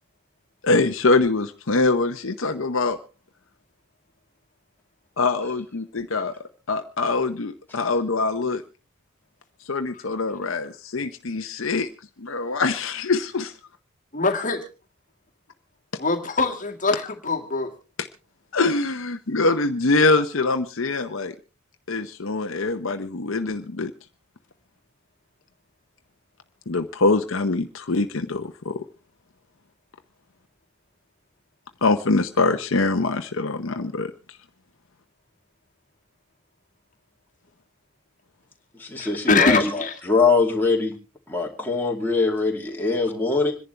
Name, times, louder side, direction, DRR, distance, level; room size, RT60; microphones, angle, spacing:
voice 1, 0.6-3.0 5.2-6.3 6.7-8.6 9.6-11.9 12.2-13.5 18.0-18.1 18.5-21.3 21.9-23.9 26.7-28.8 31.8-34.1, left 3 dB, 60° left, 7 dB, 0.8 m, -23 dB
voice 2, 14.1-14.6 16.0-17.7 39.0-40.0, left 3 dB, 35° left, 4 dB, 2.0 m, -23 dB
voice 3, 38.8-40.9 41.3-43.5, left 4 dB, 10° left, -1 dB, 2.5 m, -22 dB
26.5 x 11.0 x 3.3 m, 0.34 s
head